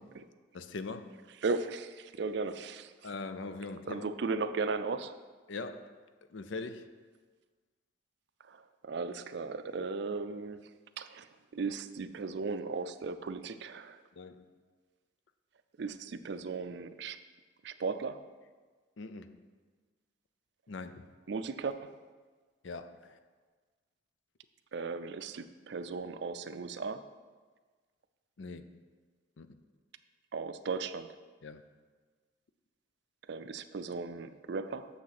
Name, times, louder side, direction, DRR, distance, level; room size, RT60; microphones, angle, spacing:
voice 1, 0.5-1.1 3.0-4.1 5.5-5.9 6.3-6.9 14.2-14.4 19.0-19.4 20.7-21.0 22.6-23.2 28.4-28.7 29.4-29.6 31.4-31.6, left 3 dB, 65° left, 10 dB, 0.5 m, -41 dB
voice 2, 1.4-3.1 3.9-5.1 8.5-10.7 11.0-11.3 11.5-14.0 15.8-17.2 17.6-18.2 21.3-21.9 24.7-27.0 30.3-31.2 33.3-34.9, right 4 dB, 55° right, 11 dB, 0.4 m, -36 dB
7.1 x 6.3 x 5.9 m, 1.4 s
head